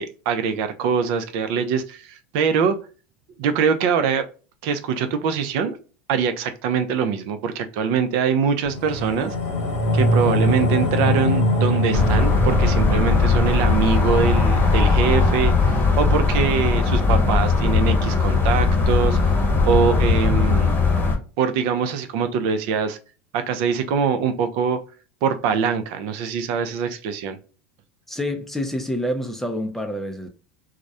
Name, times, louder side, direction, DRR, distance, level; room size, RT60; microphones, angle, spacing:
voice 1, 0.0-2.8 3.4-4.3 4.6-5.8 6.1-9.3 9.9-19.2 19.7-20.7 21.4-23.0 23.3-24.8 25.2-27.4, right 6 dB, 65° right, 0.4 m, -23 dB
sound 1, 8.6-19.2 19.6-19.7, left 1 dB, 80° left, 0.9 m, -25 dB
sound 2, 11.9-21.2, left 4 dB, 25° left, 0.8 m, -19 dB
voice 2, 28.1-30.3, equal, 5° left, 0.4 m, -27 dB
2.3 x 2.0 x 2.6 m
supercardioid pair, 120°, 7 cm